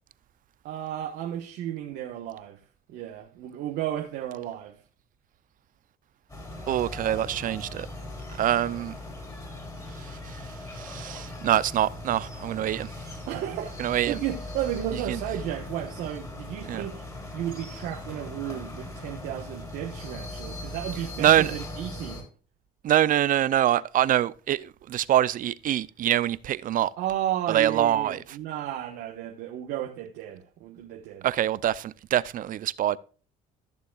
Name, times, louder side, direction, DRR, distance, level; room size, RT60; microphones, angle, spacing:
voice 1, 0.6-2.6 2.9-4.8 13.2-13.8 14.1-17.0 17.3-22.3 27.0-31.3, right 11 dB, 80° right, 1.2 m, -33 dB
sound 1, 6.3-22.2, left 1 dB, 20° left, 4.0 m, -39 dB
voice 2, 6.7-7.9 8.4-9.0 10.0-10.4 10.7-12.9 13.8-14.2 15.1-15.2 16.6-16.9 21.2-21.5 22.8-26.9 27.5-28.4 31.2-33.0, right 12 dB, 55° right, 0.5 m, -25 dB
14.5 x 6.9 x 2.4 m
cardioid pair, 110°, 17 cm